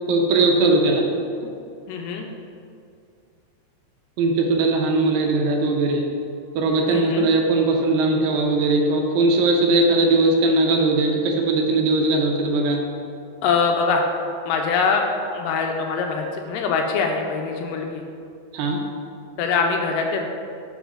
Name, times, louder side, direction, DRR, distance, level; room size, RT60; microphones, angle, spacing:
voice 1, 0.1-1.1 4.2-6.0 6.6-12.8 18.5-18.8, right 2 dB, 85° right, 1 dB, 2.5 m, -19 dB
voice 2, 1.9-2.3 6.9-7.3 13.4-14.0 14.5-18.0 19.4-20.2, left 5 dB, 80° left, 2 dB, 2.2 m, -23 dB
11.0 x 5.6 x 2.5 m, 2.4 s
omnidirectional pair, 4.1 m